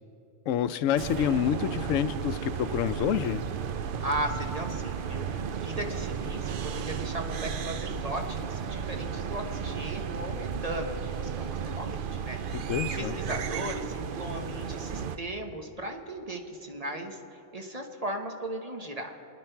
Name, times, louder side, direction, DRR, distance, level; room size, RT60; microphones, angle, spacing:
voice 1, 0.5-3.4 12.5-13.2, left 10 dB, 85° left, 13 dB, 1.0 m, -28 dB
sound 1, 1.0-15.2, right 7 dB, 55° right, 0.6 m, -34 dB
voice 2, 4.0-12.7 13.0-19.2, right 1 dB, 30° right, 3 dB, 1.1 m, -37 dB
28.0 x 9.9 x 4.5 m, 2.9 s
omnidirectional pair, 1.3 m